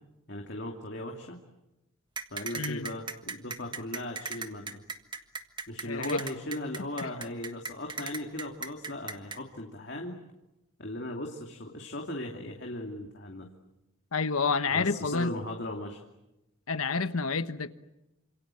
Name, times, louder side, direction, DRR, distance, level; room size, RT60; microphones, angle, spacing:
voice 1, 0.3-1.4 2.3-4.8 5.7-10.2 10.8-13.5 14.7-16.0, left 1 dB, 55° left, 2.7 m, -38 dB
sound 1, 2.2-9.4, right 4 dB, 20° right, 1.5 m, -37 dB
voice 2, 2.5-2.9 5.9-6.2 7.0-7.1 14.1-15.3 16.7-17.7, left 4 dB, 90° left, 1.3 m, -29 dB
28.5 x 27.0 x 7.7 m
head